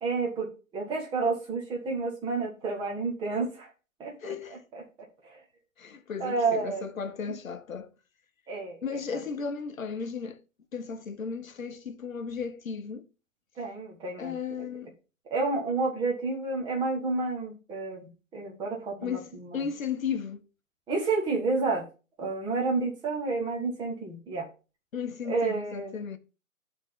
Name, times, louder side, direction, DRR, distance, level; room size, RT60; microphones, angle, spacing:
voice 1, 0.0-3.7 4.0-4.3 4.7-4.8 5.2-5.4 6.2-6.9 7.2-7.3 8.5-9.2 13.5-14.6 15.3-19.7 20.9-21.8 22.2-24.5 25.2-25.9, right 3 dB, 10° right, 1.7 m, -30 dB
voice 2, 4.2-4.6 5.8-7.9 8.8-10.4 10.7-13.1 14.2-14.9 19.0-20.5 24.9-26.2, left 6 dB, 75° left, 1.1 m, -35 dB
12.0 x 4.1 x 3.6 m
figure-of-eight pair, 145°, 41 cm